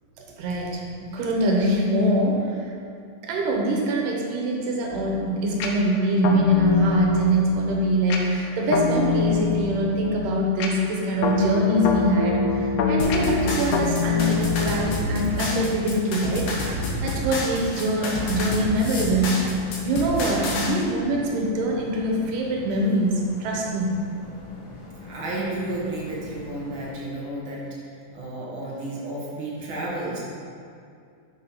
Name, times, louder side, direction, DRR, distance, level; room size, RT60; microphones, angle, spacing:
voice 1, 0.2-2.7 3.2-19.5 19.8-23.9, right 1 dB, 85° right, -1 dB, 2.7 m, -24 dB
sound 1, 4.9-15.5, left 4 dB, 80° left, 1.5 m, -25 dB
sound 2, 13.0-20.7, left 1 dB, 60° left, 2.1 m, -29 dB
sound 3, 14.2-26.9, left 2 dB, 45° left, 2.1 m, -43 dB
voice 2, 25.0-30.2, right 1 dB, 50° right, -5 dB, 1.7 m, -32 dB
6.2 x 5.8 x 5.6 m, 2.4 s
omnidirectional pair, 3.7 m